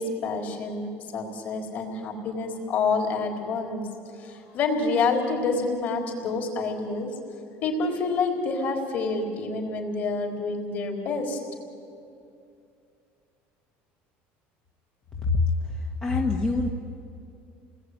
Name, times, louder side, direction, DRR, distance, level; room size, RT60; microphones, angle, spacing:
voice 1, 0.0-3.8 4.1-7.1 7.6-11.4, left 4 dB, 40° left, 2 dB, 4.2 m, -28 dB
voice 2, 15.2-16.7, left 3 dB, 20° left, 1 dB, 1.4 m, -25 dB
29.5 x 20.0 x 9.5 m, 2.5 s
cardioid pair, 175°, 5 cm